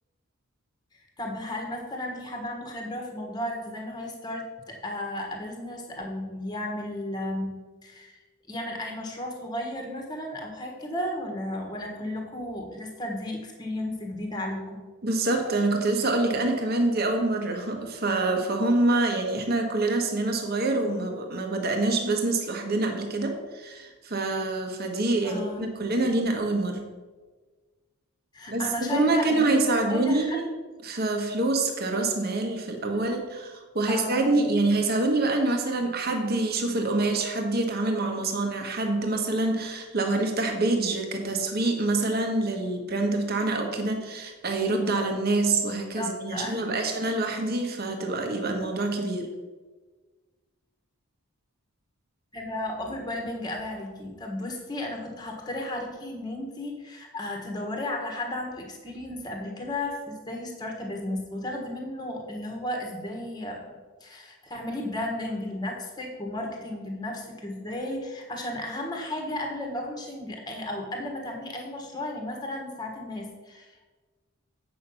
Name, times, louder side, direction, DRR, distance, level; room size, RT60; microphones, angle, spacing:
voice 1, 1.2-8.2 8.5-14.8 20.6-21.0 25.2-25.6 28.3-30.4 32.9-33.2 33.9-34.4 46.0-46.9 52.3-73.9, left 1 dB, 20° left, 1 dB, 1.4 m, -34 dB
voice 2, 15.0-26.8 28.5-30.5 30.8-49.3, right 2 dB, 45° right, 3 dB, 1.2 m, -26 dB
8.3 x 6.2 x 5.6 m, 1.3 s
head